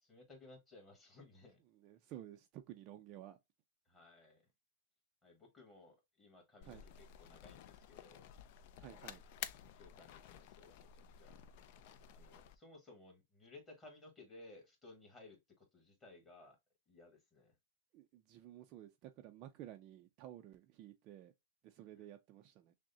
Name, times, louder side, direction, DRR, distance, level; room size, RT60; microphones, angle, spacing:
voice 1, 0.0-1.6 3.8-4.5 5.2-8.3 8.7-9.0 9.7-11.3 12.1-16.6 16.9-17.5 22.0-22.1, left 2 dB, 10° left, 1.5 m, -59 dB
voice 2, 1.7-3.4 6.6-6.9 8.8-9.2 17.9-21.3 21.6-22.7, right 12 dB, 30° right, 0.4 m, -53 dB
sound 1, 6.6-12.6, left 10 dB, 45° left, 0.4 m, -52 dB
6.1 x 2.1 x 2.7 m
supercardioid pair, 165°, 0 cm